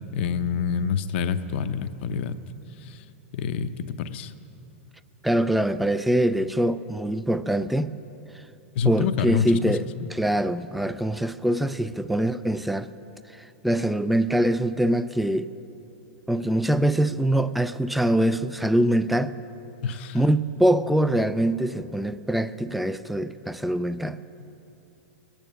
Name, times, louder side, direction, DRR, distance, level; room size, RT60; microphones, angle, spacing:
voice 1, 0.1-2.3 2.8-3.0 3.3-4.3 8.7-9.8 19.8-20.2, left 6 dB, 65° left, 0.7 m, -27 dB
voice 2, 5.2-7.9 8.8-12.9 13.6-15.5 16.3-19.3 20.1-24.2, right 1 dB, ahead, 0.4 m, -23 dB
21.0 x 9.0 x 6.4 m
hypercardioid pair, 120°, 7 cm